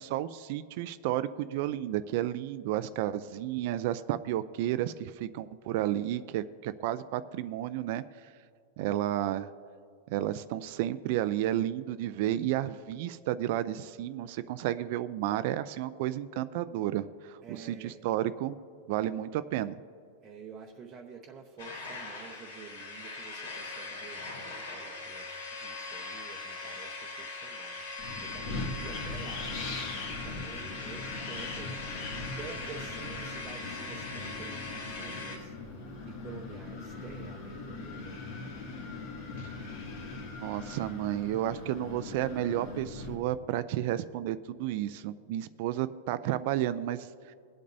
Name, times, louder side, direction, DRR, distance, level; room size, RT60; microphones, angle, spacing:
voice 1, 0.0-8.3 8.8-9.5 10.1-18.6 18.9-19.8 39.4-39.6 40.4-47.3, right 13 dB, 45° right, 13 dB, 0.3 m, -32 dB
voice 2, 17.4-18.0 20.2-27.8 28.2-29.7 30.0-35.5 36.1-38.2, right 5 dB, 15° right, -1 dB, 0.8 m, -49 dB
sound 1, 21.6-35.4, left 3 dB, 80° left, 3.1 m, -41 dB
Wind, 28.0-43.1, left 3 dB, 50° left, 2.1 m, -40 dB
22.0 x 8.5 x 2.7 m, 2.3 s
supercardioid pair, 170°, 0 cm